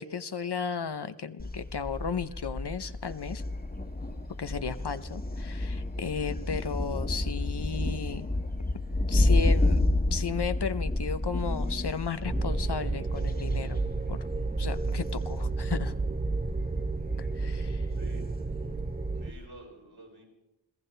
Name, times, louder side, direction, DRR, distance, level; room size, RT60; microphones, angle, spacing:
voice 1, 0.0-3.4 4.4-8.3 9.1-9.8 10.1-13.8 14.1-14.2 14.6-15.9 17.2-17.9, left 6 dB, 55° left, 11 dB, 0.9 m, -34 dB
Thunder, 1.4-19.5, left 2 dB, 20° left, 1.5 m, -31 dB
sound 1, 12.2-19.3, right 3 dB, 15° right, 0.8 m, -31 dB
voice 2, 17.9-18.3 19.1-20.2, right 2 dB, 65° right, -2 dB, 7.8 m, -49 dB
26.5 x 16.0 x 3.4 m, 0.92 s
wide cardioid pair, 50°, 48 cm